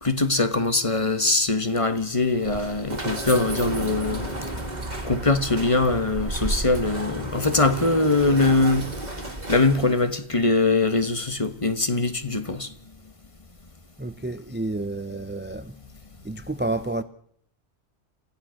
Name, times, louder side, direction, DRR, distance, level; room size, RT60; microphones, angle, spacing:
voice 1, 0.0-4.3 5.0-8.9 9.5-12.7, left 3 dB, 30° left, 1.3 m, -22 dB
sound 1, 2.3-10.1, right 1 dB, 40° right, 2.3 m, -32 dB
voice 2, 14.0-15.7 16.2-17.0, right 2 dB, 10° right, 0.6 m, -30 dB
28.5 x 15.0 x 6.4 m
omnidirectional pair, 1.1 m